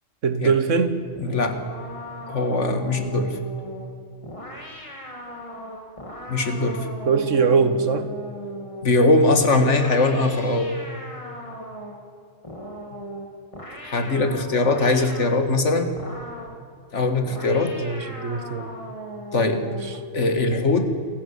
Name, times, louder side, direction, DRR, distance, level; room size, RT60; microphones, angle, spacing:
voice 1, 0.2-1.0 7.0-8.1 17.8-18.7 19.6-20.0, right 5 dB, 75° right, 11 dB, 1.7 m, -22 dB
voice 2, 1.2-1.6 2.3-3.4 6.3-6.9 8.8-10.8 13.8-15.9 16.9-17.8 19.3-20.9, left 2 dB, 65° left, 7 dB, 2.2 m, -21 dB
sound 1, 1.2-9.0 9.6-12.1 12.4-15.4 16.0-16.6 17.2-20.1, equal, 25° left, 3.0 m, -38 dB
27.5 x 15.5 x 8.2 m, 2.3 s
omnidirectional pair, 1.3 m